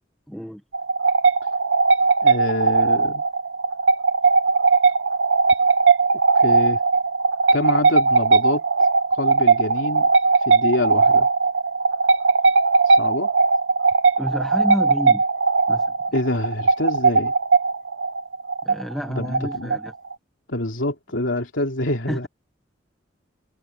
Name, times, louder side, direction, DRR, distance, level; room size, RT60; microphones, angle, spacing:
voice 1, 0.3-0.6 14.2-15.2 15.7-15.9 18.6-19.9 22.1-22.2, equal, ahead, 1.4 m, -29 dB
sound 1, 0.7-20.1, right 4 dB, 85° right, 0.9 m, -19 dB
voice 2, 2.2-3.2 6.3-6.8 7.5-8.6 9.1-10.1 10.5-11.3 12.9-13.3 16.1-17.3 19.1-19.8 20.5-22.3, left 1 dB, 90° left, 3.2 m, -26 dB
head